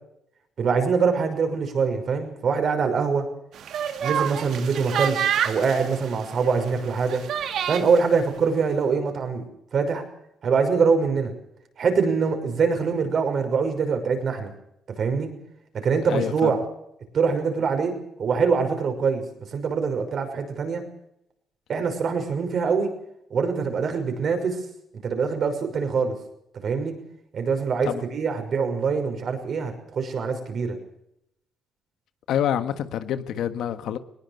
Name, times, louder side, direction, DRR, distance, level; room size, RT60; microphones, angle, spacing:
voice 1, 0.6-3.2 4.0-7.2 7.7-9.4 9.7-10.0 10.4-11.3 11.8-14.5 15.0-15.3 15.7-16.6 17.1-17.9 18.2-19.2 19.5-20.8 21.7-22.9 23.3-24.6 25.0-26.2 26.6-26.9 27.3-30.8, right 5 dB, 55° right, 5.9 m, -24 dB
sound 1, 3.5-8.0, right 9 dB, 75° right, 2.1 m, -28 dB
voice 2, 16.1-16.6 27.8-28.0 32.3-34.0, left 10 dB, 80° left, 1.5 m, -27 dB
20.5 x 19.5 x 6.7 m
cardioid pair, 90°, 0 cm